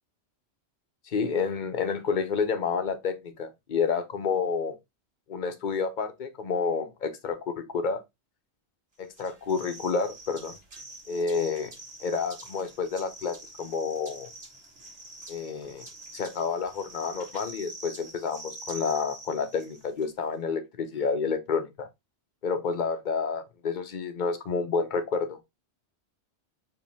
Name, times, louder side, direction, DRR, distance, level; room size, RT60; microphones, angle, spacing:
voice 1, 1.1-4.7 5.3-8.0 9.0-10.6 11.1-11.7 12.0-14.3 15.3-15.9 16.1-21.9 22.4-25.4, left 5 dB, 50° left, 0.9 m, -29 dB
sound 1, 9.1-20.0, right 2 dB, 65° right, 1.9 m, -46 dB
5.0 x 3.2 x 3.3 m
omnidirectional pair, 1.1 m